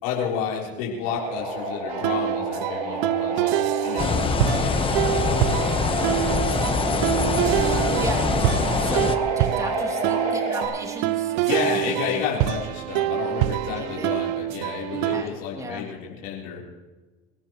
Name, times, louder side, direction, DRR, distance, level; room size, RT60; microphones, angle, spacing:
voice 1, 0.0-5.8 11.5-16.6, left 7 dB, 85° left, -4 dB, 3.8 m, -31 dB
sound 1, 1.1-10.7, right 2 dB, 60° right, 6.9 m, -29 dB
sound 2, 1.9-15.2, right 15 dB, 80° right, 0.4 m, -26 dB
sound 3, 4.0-9.2, left 6 dB, 30° left, 1.2 m, -24 dB
voice 2, 8.0-12.2 13.8-14.1 14.9-15.9, right 2 dB, 20° right, 1 dB, 2.9 m, -35 dB
28.0 x 13.0 x 3.1 m, 1.2 s
supercardioid pair, 95°, 17 cm